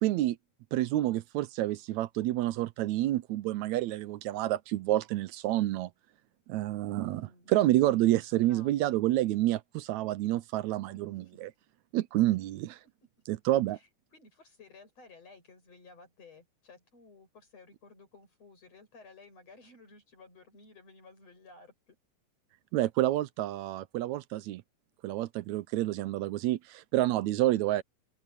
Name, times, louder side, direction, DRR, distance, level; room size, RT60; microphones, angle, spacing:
voice 1, 0.0-0.4 0.7-5.9 6.5-11.5 11.9-12.7 13.3-13.8 22.7-24.6 25.0-27.8, right 15 dB, 85° right, 2.0 m, -28 dB
voice 2, 7.0-7.5 7.8-9.1 10.9-11.5 12.5-12.6 13.7-22.0, left 3 dB, 60° left, 8.4 m, -55 dB
open air
omnidirectional pair, 3.3 m